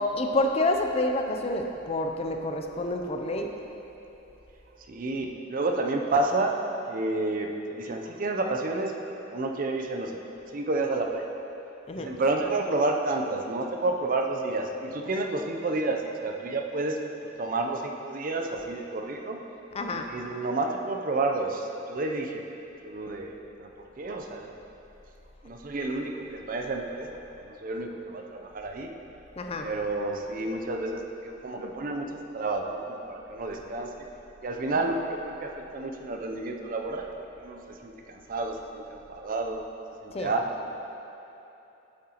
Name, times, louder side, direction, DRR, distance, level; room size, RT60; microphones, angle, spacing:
voice 1, 0.2-3.5 11.9-12.1 19.7-20.1 29.4-29.7 40.1-40.3, left 2 dB, 30° left, 4 dB, 0.4 m, -28 dB
voice 2, 4.9-6.6 6.9-10.2 10.5-11.2 12.0-17.0 17.4-19.4 19.9-22.4 22.8-23.7 24.0-24.5 25.4-28.9 29.6-34.1 34.4-37.1 37.4-39.6 40.0-40.7, right 2 dB, 45° right, 3 dB, 0.5 m, -30 dB
8.7 x 7.5 x 2.9 m, 3.0 s
head